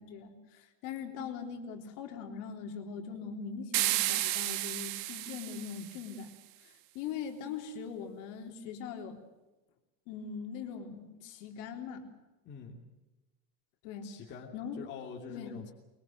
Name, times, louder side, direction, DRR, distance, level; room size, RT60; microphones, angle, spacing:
voice 1, 0.0-6.3 6.6-9.2 10.1-12.1 13.8-14.1 14.5-14.8 15.3-15.5, left 6 dB, 50° left, 4 dB, 3.7 m, -41 dB
sound 1, 3.7-6.1, right 16 dB, 50° right, 1.4 m, -32 dB
voice 2, 12.4-12.8 14.0-15.7, left 5 dB, 25° left, -1 dB, 3.0 m, -45 dB
23.5 x 23.0 x 7.8 m, 1.1 s
cardioid pair, 175°, 38 cm